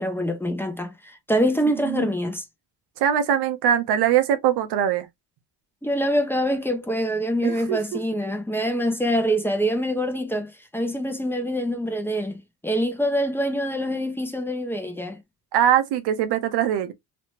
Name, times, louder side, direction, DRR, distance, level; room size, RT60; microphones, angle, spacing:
voice 1, 0.0-2.4 5.8-15.2, equal, 5° left, 0.9 m, -25 dB
voice 2, 3.0-5.1 7.4-8.0 15.5-16.9, right 10 dB, 80° right, 0.9 m, -22 dB
3.1 x 3.0 x 2.8 m
cardioid pair, 105°, 39 cm